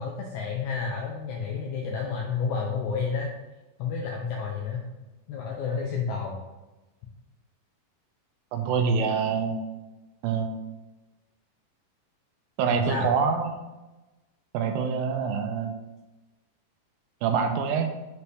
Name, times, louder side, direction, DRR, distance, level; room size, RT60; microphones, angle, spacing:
voice 1, 0.0-3.3 3.8-4.8 5.3-6.4 12.7-13.1, left 5 dB, 85° left, 0 dB, 1.7 m, -30 dB
voice 2, 8.5-9.6 10.2-10.5 12.6-13.6 14.5-15.8 17.2-17.9, right 6 dB, 80° right, 6 dB, 2.3 m, -25 dB
7.1 x 4.5 x 3.3 m, 1.1 s
omnidirectional pair, 4.2 m